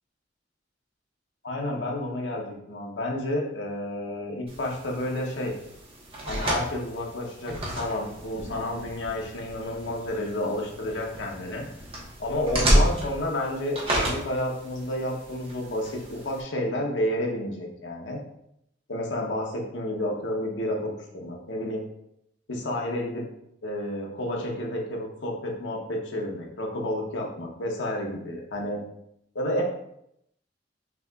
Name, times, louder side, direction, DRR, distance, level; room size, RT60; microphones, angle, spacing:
voice 1, 1.4-5.5 6.3-11.6 12.2-18.2 18.9-21.8 22.5-23.3 23.6-28.8 29.3-29.6, left 1 dB, 80° left, 0 dB, 0.9 m, -30 dB
sound 1, 4.5-16.4, right 1 dB, 30° right, 1.1 m, -31 dB
5.9 x 2.9 x 2.4 m, 0.77 s
head